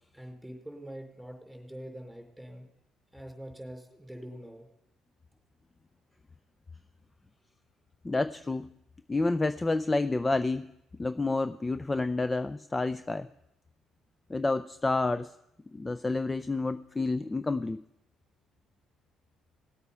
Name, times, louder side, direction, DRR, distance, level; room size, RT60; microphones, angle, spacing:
voice 1, 0.1-2.7 3.1-4.7, equal, 5° right, 2 dB, 4.4 m, -44 dB
voice 2, 8.0-8.7 9.1-10.7 11.0-13.3 14.3-15.3 15.7-17.8, left 3 dB, 20° left, 13 dB, 0.5 m, -29 dB
18.5 x 8.1 x 5.6 m, 0.84 s
supercardioid pair, 65°, 0 cm